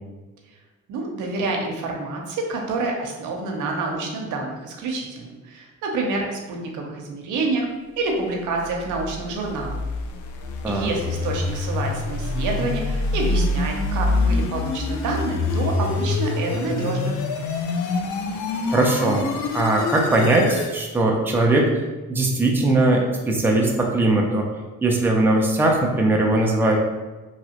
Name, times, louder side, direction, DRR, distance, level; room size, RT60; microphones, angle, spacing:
voice 1, 0.9-7.7 8.0-9.8 10.7-17.2, right 3 dB, 80° right, 1 dB, 0.6 m, -28 dB
sound 1, 8.5-20.7, left 3 dB, 75° left, 0.5 m, -26 dB
voice 2, 18.7-19.3 19.5-21.7 22.1-24.5 24.8-26.8, right 2 dB, 5° right, 0 dB, 0.4 m, -20 dB
2.9 x 2.3 x 2.8 m, 1.2 s
cardioid pair, 90°, 30 cm